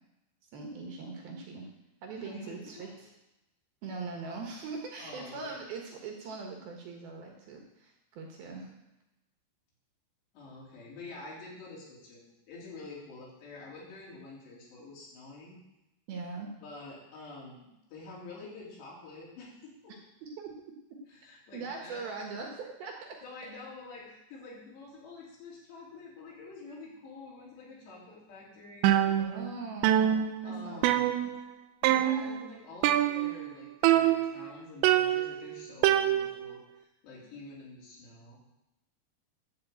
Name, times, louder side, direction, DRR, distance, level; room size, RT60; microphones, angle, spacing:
voice 1, 0.5-1.7 2.0-3.1 3.8-8.7 16.1-16.5 20.2-20.5 20.9-21.0 21.5-23.2 29.2-30.8 31.2-31.3, right 4 dB, 65° right, 1 dB, 2.8 m, -41 dB
voice 2, 2.2-3.0 5.0-5.6 10.3-15.6 16.6-19.9 21.1-22.2 23.2-29.1 30.4-31.1 31.8-38.4, left 3 dB, 70° left, -5 dB, 5.4 m, -47 dB
sound 1, 28.8-29.6 29.8-31.5 31.8-32.4 32.8-33.5 33.8-34.5 34.8-36.5, right 12 dB, 80° right, 2.8 m, -26 dB
12.5 x 5.2 x 7.9 m, 0.93 s
omnidirectional pair, 5.2 m